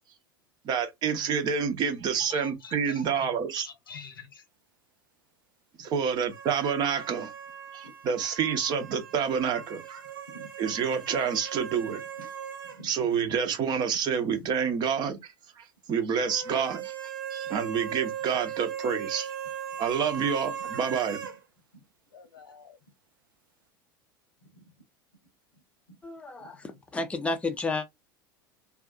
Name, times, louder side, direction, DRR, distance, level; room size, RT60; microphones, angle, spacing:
voice 1, 0.6-3.7 5.8-7.3 7.7-10.0 10.6-12.0 12.8-15.2 15.6-16.9 17.3-19.3 19.8-21.2, right 7 dB, 40° right, 0.8 m, -28 dB
voice 2, 2.1-4.5 7.8-7.9 10.3-10.5 11.9-12.3 12.6-12.9 17.4-17.5 21.7-21.8 22.1-22.8 24.4-24.7 26.4-26.5, left 4 dB, 80° left, 0.9 m, -48 dB
sound 1, 6.3-12.8 13.1-13.2 16.3-21.4, right 8 dB, 70° right, 0.6 m, -38 dB
voice 3, 26.0-27.9, left 3 dB, 10° left, 0.5 m, -32 dB
2.6 x 2.3 x 2.4 m
figure-of-eight pair, 80°, 12 cm